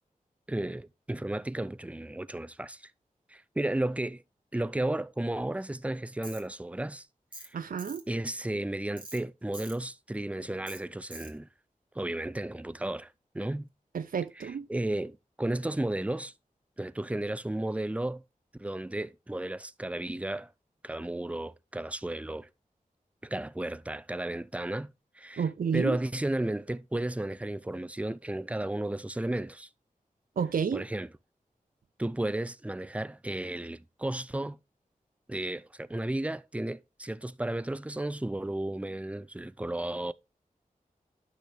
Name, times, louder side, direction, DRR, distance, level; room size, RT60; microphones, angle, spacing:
voice 1, 0.5-2.9 3.3-4.2 4.5-7.1 7.4-7.5 8.1-11.5 12.0-13.7 14.4-16.3 16.8-18.2 18.6-20.5 20.8-22.5 23.2-29.7 30.7-31.1 32.0-34.6 35.3-40.1, right 1 dB, 10° right, 0.5 m, -33 dB
Tools, 6.2-6.4 7.3-7.5 7.8-8.0 9.0-9.2 9.5-9.8 10.7-10.8 11.1-11.3, right 2 dB, 35° right, 1.9 m, -44 dB
voice 2, 7.5-8.0 13.9-14.7 25.4-26.0 30.4-30.8, right 6 dB, 75° right, 0.5 m, -30 dB
12.0 x 6.1 x 3.4 m
wide cardioid pair, 75°, 14 cm